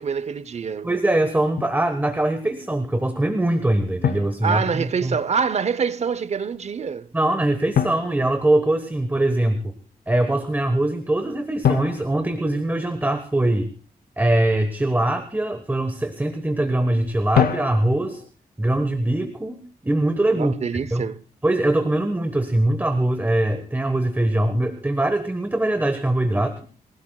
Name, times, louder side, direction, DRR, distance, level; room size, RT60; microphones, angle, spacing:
voice 1, 0.0-0.9 4.4-7.1 20.3-21.2, right 6 dB, 45° right, 0.8 m, -25 dB
voice 2, 0.8-5.2 7.1-9.7 10.1-13.7 14.2-18.2 18.6-20.5 20.9-21.0 21.4-26.6, right 1 dB, 10° right, 1.2 m, -22 dB
Drum, 1.6-1.9 4.0-5.2 7.7-9.2 11.6-13.3 17.3-18.3, left 8 dB, 70° left, 0.8 m, -26 dB
27.5 x 16.5 x 2.3 m
wide cardioid pair, 130°, 16 cm